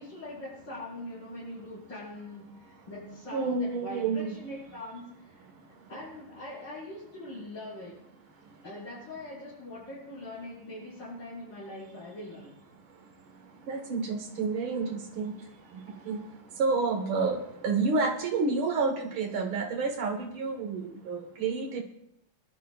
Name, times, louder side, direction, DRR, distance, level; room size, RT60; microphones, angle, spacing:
voice 1, 0.0-5.4 5.9-8.0 8.6-12.6, left 1 dB, 70° left, -13 dB, 6.3 m, -42 dB
voice 2, 3.3-4.4 13.7-15.3 16.1-16.2 16.6-21.8, right 4 dB, 80° right, 3 dB, 2.3 m, -29 dB
22.0 x 12.0 x 2.4 m, 0.79 s
omnidirectional pair, 2.2 m